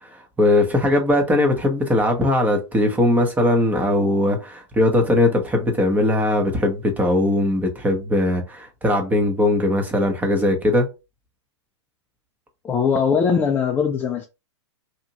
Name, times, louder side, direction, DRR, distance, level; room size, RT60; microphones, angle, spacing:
voice 1, 0.4-10.9, left 1 dB, 10° right, 0.8 m, -20 dB
voice 2, 12.6-14.3, left 6 dB, 15° left, 0.3 m, -20 dB
2.8 x 2.4 x 2.8 m
hypercardioid pair, 115°, 16 cm